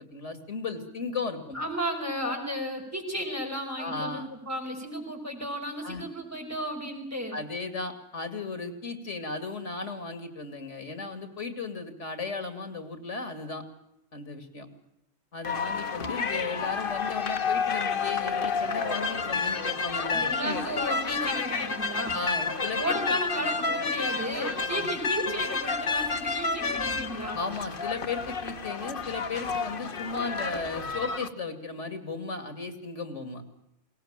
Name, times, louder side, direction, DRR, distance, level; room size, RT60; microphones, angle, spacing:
voice 1, 0.0-1.6 2.3-2.4 3.8-4.3 5.8-6.0 7.3-13.6 14.1-14.7 15.3-20.6 22.1-22.9 24.7-24.9 27.3-33.4, left 4 dB, 80° left, 9 dB, 2.9 m, -35 dB
voice 2, 1.5-7.4 20.1-22.2 22.8-27.4, equal, 15° right, 1 dB, 5.7 m, -33 dB
sound 1, 15.4-31.3, left 4 dB, 50° left, 1.3 m, -30 dB
22.5 x 19.0 x 8.9 m, 0.81 s
omnidirectional pair, 1.2 m